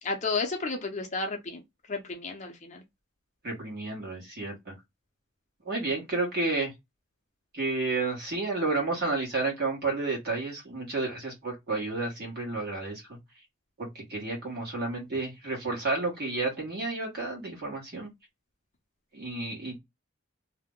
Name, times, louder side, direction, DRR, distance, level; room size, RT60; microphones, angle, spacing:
voice 1, 0.0-2.8, left 3 dB, 40° left, 0.6 m, -32 dB
voice 2, 3.4-4.7 5.6-6.7 7.5-13.2 13.8-18.1 19.1-19.8, right 3 dB, 55° right, 1.3 m, -31 dB
2.7 x 2.1 x 3.6 m
head